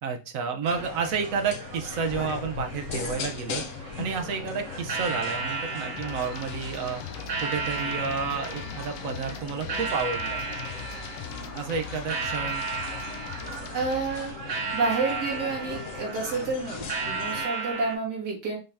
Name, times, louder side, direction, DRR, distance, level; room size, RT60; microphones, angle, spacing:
voice 1, 0.0-3.6 4.0-7.0 7.4-10.4 11.5-12.6, right 5 dB, 60° right, 4 dB, 1.1 m, -30 dB
sound 1, 0.6-18.0, right 4 dB, 90° right, 2.2 m, -35 dB
sound 2, 0.7-17.5, left 6 dB, 60° left, 0.9 m, -39 dB
sound 3, 6.0-14.3, left 7 dB, 80° left, 1.2 m, -41 dB
voice 2, 13.7-18.6, right 4 dB, 75° right, -3 dB, 2.5 m, -30 dB
5.5 x 2.8 x 3.5 m, 0.30 s
omnidirectional pair, 1.8 m